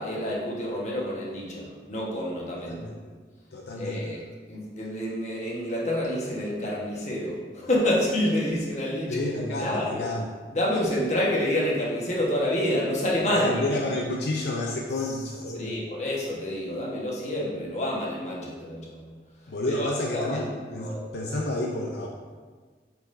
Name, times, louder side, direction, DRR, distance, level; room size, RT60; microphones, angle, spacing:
voice 1, 0.0-2.8 3.8-4.2 4.5-10.0 10.5-13.8 15.0-15.1 15.5-19.1 19.7-20.5 20.8-21.0, left 1 dB, 40° left, -4 dB, 1.3 m, -28 dB
voice 2, 2.6-3.1 3.5-4.1 9.1-10.3 13.4-15.8 19.5-20.5 20.7-22.1, left 1 dB, 70° left, -1 dB, 0.6 m, -30 dB
8.5 x 4.8 x 2.6 m, 1.5 s
head